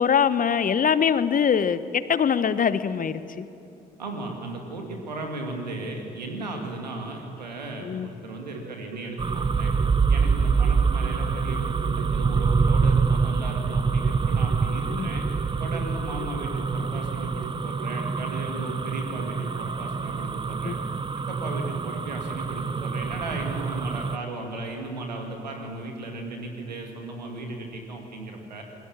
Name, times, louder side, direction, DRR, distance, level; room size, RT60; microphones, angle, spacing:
voice 1, 0.0-3.5 7.8-8.1 14.9-15.1 20.6-20.7, left 7 dB, 40° left, 14 dB, 1.1 m, -23 dB
voice 2, 4.0-9.7 10.1-15.3 15.6-20.8 21.2-28.6, right 2 dB, 85° right, 2 dB, 2.3 m, -35 dB
Keyboard (musical), 8.5-21.0, right 9 dB, 60° right, 1.3 m, -44 dB
sound 1, 9.2-24.2, right 5 dB, 25° right, 0.8 m, -25 dB
27.5 x 21.0 x 7.3 m, 2.7 s
figure-of-eight pair, 40°, 21 cm